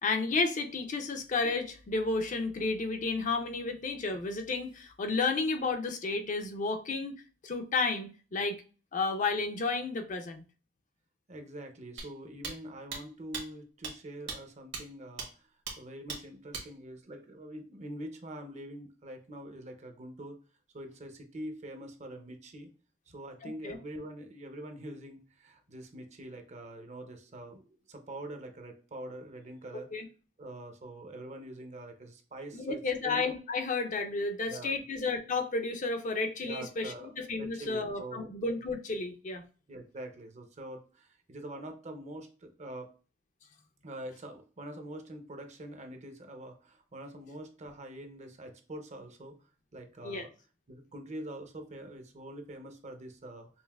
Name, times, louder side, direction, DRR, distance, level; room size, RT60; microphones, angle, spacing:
voice 1, 0.0-7.2 7.4-8.6 8.9-10.4 23.4-23.8 29.9-30.1 32.5-39.4 50.0-50.3, left 3 dB, 40° left, 0.5 m, -32 dB
voice 2, 11.3-15.5 15.8-20.4 20.7-22.7 23.1-29.9 30.4-33.3 34.5-34.8 36.4-37.1 37.4-38.3 39.7-42.9 43.8-49.4 49.7-50.3 50.7-53.5, right 1 dB, 40° right, 0.6 m, -44 dB
sound 1, 12.0-12.1 12.4-12.5 12.9-13.0 13.3-13.4 13.8-13.9 14.3-14.4 14.7-14.8 15.2-15.3 15.7-15.8 16.1-16.2 16.5-16.6, right 5 dB, 65° right, 1.3 m, -37 dB
5.5 x 2.5 x 2.3 m
head